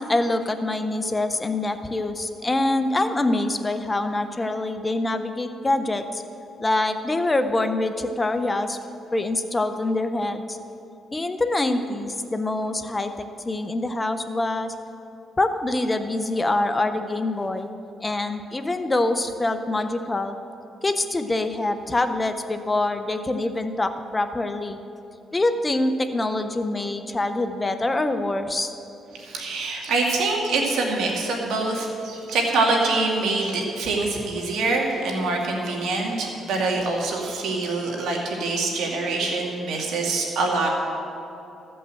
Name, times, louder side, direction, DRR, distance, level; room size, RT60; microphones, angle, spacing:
voice 1, 0.0-6.2 6.6-8.8 9.1-10.6 11.1-14.7 15.4-17.7 18.0-20.3 20.8-24.8 25.3-28.7, left 2 dB, 20° left, 9 dB, 0.7 m, -25 dB
voice 2, 29.1-40.7, right 3 dB, 80° right, 0 dB, 2.1 m, -25 dB
14.5 x 5.5 x 7.6 m, 2.8 s
cardioid pair, 90°, 0 cm